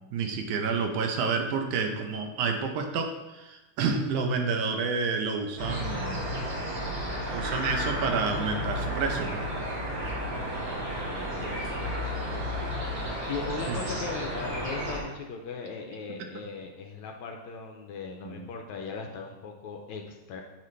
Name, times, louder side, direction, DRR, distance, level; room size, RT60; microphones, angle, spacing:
voice 1, 0.0-6.3 7.3-9.5 13.7-13.8 18.2-18.5, right 5 dB, 75° right, 4 dB, 2.2 m, -29 dB
sound 1, 5.6-15.0, equal, 30° right, 2.9 m, -32 dB
voice 2, 11.1-11.9 13.3-20.4, left 5 dB, 75° left, 2 dB, 1.9 m, -38 dB
9.2 x 7.7 x 3.2 m, 1.1 s
omnidirectional pair, 3.7 m